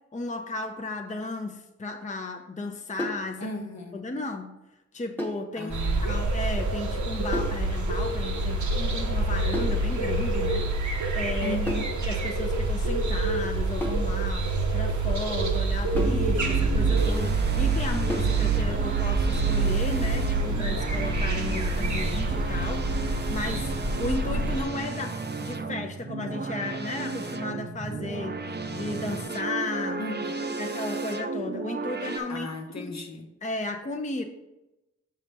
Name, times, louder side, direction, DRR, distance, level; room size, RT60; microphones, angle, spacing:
voice 1, 0.1-3.5 3.9-4.6 4.9-11.6 12.1-22.8 23.3-23.7 24.0-28.4 28.7-30.0 30.5-32.5 32.8-32.9 33.4-34.2, left 3 dB, 25° left, 5 dB, 0.5 m, -34 dB
sound 1, 3.0-3.3 5.2-5.5 7.3-7.6 9.5-9.8 11.7-12.0 13.8-14.1 16.0-16.3 18.1-18.4, equal, 5° left, 1.0 m, -33 dB
voice 2, 3.4-4.3 5.6-6.2 11.4-11.9 30.0-30.5 32.3-33.3, left 1 dB, 65° left, 3 dB, 0.9 m, -36 dB
sound 2, 5.7-24.6, right 3 dB, 75° right, 0.8 m, -26 dB
sound 3, 15.9-32.2, right 3 dB, 35° right, 0.6 m, -34 dB
6.3 x 5.5 x 3.3 m, 0.97 s
wide cardioid pair, 55°, 29 cm